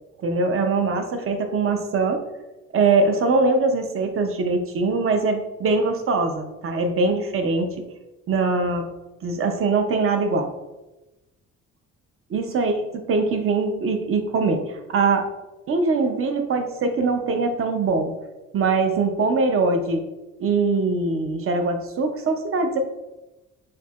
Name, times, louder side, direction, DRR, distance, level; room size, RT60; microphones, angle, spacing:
voice 1, 0.2-2.2 2.7-7.8 8.3-8.9 9.2-10.5 12.3-15.3 15.7-18.1 18.5-20.0 20.4-22.8, right 3 dB, 45° right, 6 dB, 0.6 m, -22 dB
4.6 x 2.7 x 2.4 m, 1.0 s
cardioid pair, 90°, 30 cm